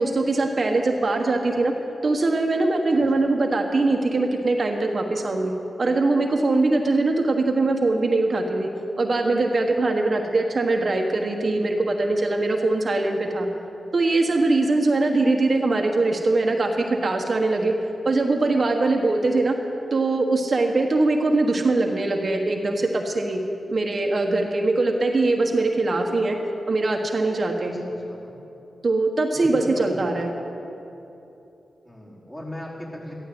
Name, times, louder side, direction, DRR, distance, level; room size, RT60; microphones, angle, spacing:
voice 1, 0.0-1.7 2.0-5.5 5.8-8.7 9.0-13.5 13.9-17.7 18.0-19.6 19.9-23.4 23.7-26.4 26.7-27.8 28.8-30.3, right 2 dB, 50° right, 2 dB, 1.4 m, -22 dB
voice 2, 2.9-3.2 27.6-28.4 29.3-30.2 31.8-33.1, left 1 dB, 20° left, -5 dB, 4.6 m, -37 dB
14.0 x 12.5 x 7.9 m, 2.9 s
cardioid pair, 55°, 0 cm